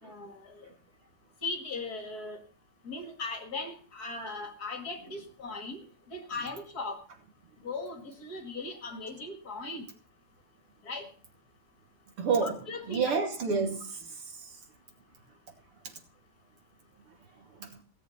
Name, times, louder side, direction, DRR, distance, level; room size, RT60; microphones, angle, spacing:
voice 1, 0.0-0.6 1.4-2.4 2.8-5.8 6.1-7.0 7.6-9.8 10.9-11.1 12.4-13.0, left 3 dB, 45° left, 2.3 m, -38 dB
voice 2, 12.2-12.6 12.9-14.2 14.4-14.5 17.6-17.8, right 5 dB, 75° right, 3.4 m, -29 dB
17.0 x 7.2 x 6.9 m
omnidirectional pair, 2.4 m